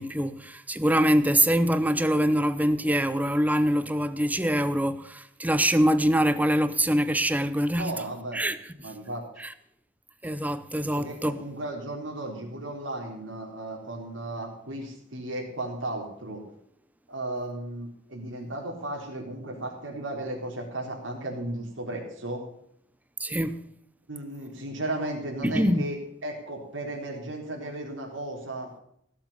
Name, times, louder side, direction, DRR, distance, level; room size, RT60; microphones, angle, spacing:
voice 1, 0.0-7.9 8.3-8.6 9.4-9.5 10.2-11.4 23.2-23.6 25.4-25.8, equal, 10° right, 0.7 m, -24 dB
voice 2, 7.8-8.4 8.8-9.3 10.9-16.4 17.1-22.4 24.1-26.0 26.2-28.7, right 1 dB, 80° right, 4.0 m, -35 dB
16.5 x 7.4 x 6.8 m
head